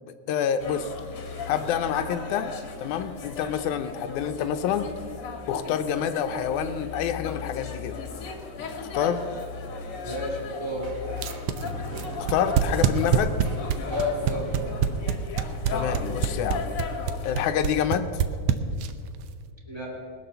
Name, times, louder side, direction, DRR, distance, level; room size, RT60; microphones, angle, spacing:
voice 1, 0.1-0.9 1.5-2.5 2.8-4.9 5.5-8.0 8.8-9.2 12.3-13.3 15.7-16.6 17.2-18.1, left 8 dB, 80° left, 10 dB, 2.1 m, -27 dB
sound 1, 0.6-17.5, left 5 dB, 55° left, 2.1 m, -36 dB
voice 2, 10.0-11.0 13.9-14.6 19.7-20.1, left 1 dB, 10° right, -3 dB, 2.0 m, -31 dB
sound 2, 10.5-16.0, right 3 dB, 45° right, 2.3 m, -41 dB
sound 3, 11.2-19.1, right 9 dB, 80° right, 1.3 m, -24 dB
20.5 x 6.8 x 6.8 m, 2.1 s
omnidirectional pair, 3.5 m